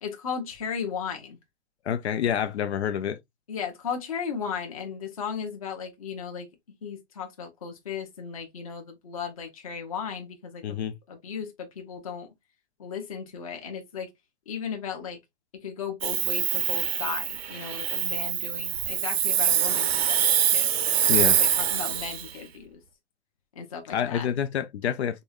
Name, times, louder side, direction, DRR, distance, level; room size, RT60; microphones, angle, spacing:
voice 1, 0.0-1.4 3.5-6.5 6.8-12.3 12.8-14.1 14.5-15.2 15.6-20.8 21.2-22.8 23.6-24.3, left 6 dB, 30° left, 0.8 m, -36 dB
voice 2, 1.9-3.2 10.6-10.9 21.1-21.4 23.9-25.2, left 9 dB, 70° left, 0.6 m, -27 dB
Hiss, 16.0-22.3, right 9 dB, 60° right, 0.5 m, -25 dB
5.3 x 2.2 x 2.3 m
hypercardioid pair, 180°, 34 cm